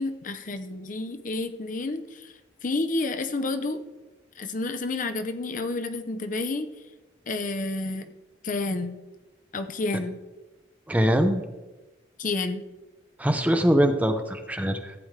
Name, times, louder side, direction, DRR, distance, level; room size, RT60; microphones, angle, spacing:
voice 1, 0.0-2.3 2.6-3.8 4.4-6.7 7.3-8.1 8.4-9.0 9.5-10.2 12.2-12.6, left 2 dB, 45° left, 8 dB, 0.7 m, -30 dB
voice 2, 10.9-11.4 13.2-14.9, equal, 10° right, 6 dB, 0.7 m, -22 dB
14.5 x 8.8 x 3.3 m, 1.1 s
head